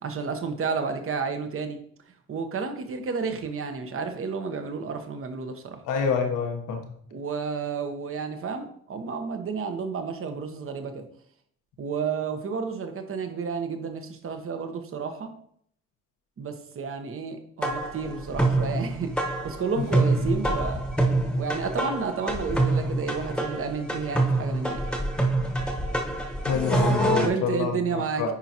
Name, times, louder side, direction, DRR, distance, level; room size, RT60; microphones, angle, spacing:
voice 1, 0.0-1.8 2.3-5.8 7.1-11.0 11.8-15.3 16.4-19.1 19.4-20.8 21.4-24.9 27.2-28.3, right 5 dB, 45° right, 6 dB, 1.1 m, -31 dB
voice 2, 5.8-6.8 19.8-19.9 26.4-28.3, left 6 dB, 90° left, 4 dB, 1.2 m, -27 dB
sound 1, 17.6-27.3, right 2 dB, 5° left, 1.1 m, -26 dB
9.7 x 4.7 x 2.9 m, 0.66 s
cardioid pair, 90°, 30 cm